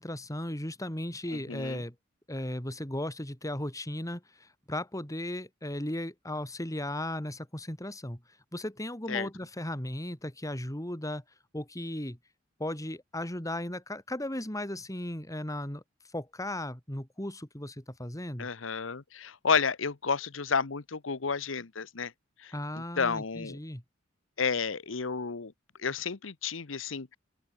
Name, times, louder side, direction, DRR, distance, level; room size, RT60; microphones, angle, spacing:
voice 1, 0.0-1.9 2.3-11.2 11.5-12.2 12.6-18.5 22.5-23.8, left 1 dB, 15° left, 3.6 m, -36 dB
voice 2, 1.5-1.8 9.1-9.3 18.4-22.1 23.0-23.6 24.4-25.5 25.8-27.2, left 5 dB, 85° left, 1.0 m, -31 dB
open air
head